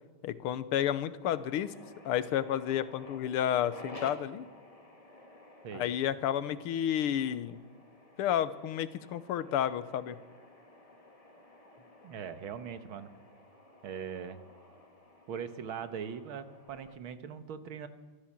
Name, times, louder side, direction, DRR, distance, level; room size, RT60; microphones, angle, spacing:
voice 1, 0.2-1.7 2.1-4.5 5.7-7.6 8.2-10.2, left 10 dB, 85° left, 15 dB, 1.8 m, -31 dB
sound 1, 1.2-17.0, left 2 dB, 15° left, 2.1 m, -53 dB
voice 2, 12.0-13.1 13.8-14.4 15.3-17.9, right 7 dB, 70° right, 11 dB, 2.0 m, -40 dB
24.5 x 14.0 x 7.4 m, 1.4 s
omnidirectional pair, 2.4 m